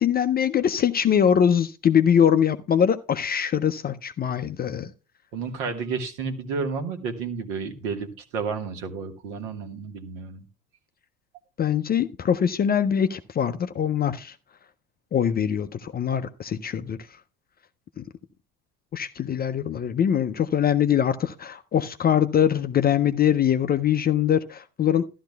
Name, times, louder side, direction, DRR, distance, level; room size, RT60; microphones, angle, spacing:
voice 1, 0.0-4.9 11.6-14.3 15.1-17.0 18.0-18.1 18.9-25.1, left 8 dB, 25° left, 0.5 m, -22 dB
voice 2, 5.3-10.4, right 5 dB, 65° right, 1.6 m, -31 dB
13.0 x 11.5 x 2.3 m
hypercardioid pair, 70°, 41 cm